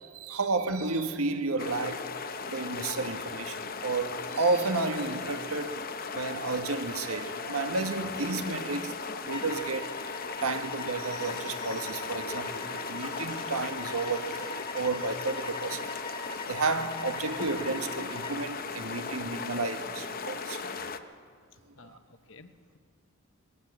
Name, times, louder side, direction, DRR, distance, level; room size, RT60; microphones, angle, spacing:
voice 1, 0.0-2.1 2.5-9.0 9.2-9.9 10.4-16.2 16.5-20.6 21.9-22.0, right 3 dB, 85° right, 1.5 m, -32 dB
sound 1, 1.6-21.0, left 5 dB, 40° left, 0.9 m, -37 dB
sound 2, 9.3-18.4, left 3 dB, 25° left, 1.3 m, -42 dB
voice 2, 21.8-22.8, left 3 dB, 60° left, 1.1 m, -54 dB
20.5 x 16.0 x 8.5 m
head